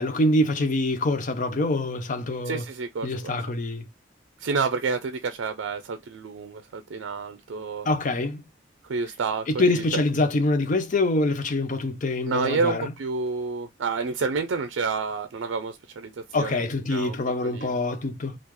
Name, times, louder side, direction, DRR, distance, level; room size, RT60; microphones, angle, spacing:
voice 1, 0.0-2.6 3.0-3.9 7.8-8.5 9.5-12.9 16.3-18.4, left 2 dB, 45° left, 0.5 m, -25 dB
voice 2, 2.5-3.3 4.4-7.9 8.8-10.0 12.3-16.6 16.9-17.2 17.4-17.8, right 4 dB, 90° right, 0.4 m, -29 dB
3.6 x 2.4 x 3.0 m
head